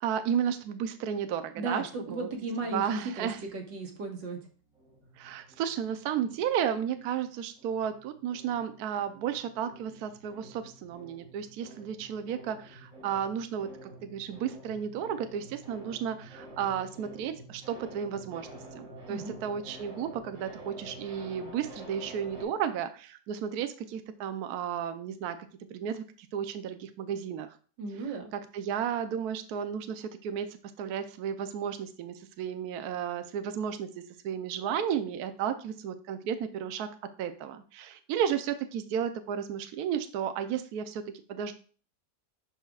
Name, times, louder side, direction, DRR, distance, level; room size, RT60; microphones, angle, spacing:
voice 1, 0.0-2.3 2.7-3.4 5.2-18.5 18.7-27.6 28.3-41.5, right 8 dB, 70° right, 9 dB, 1.0 m, -33 dB
voice 2, 1.6-4.4 19.1-19.3 27.8-28.3, right 3 dB, 90° right, 2 dB, 2.1 m, -35 dB
sound 1, 4.7-7.3 7.6-22.4, right 1 dB, 30° right, 3.7 m, -49 dB
11.5 x 4.3 x 2.4 m, 0.40 s
omnidirectional pair, 1.9 m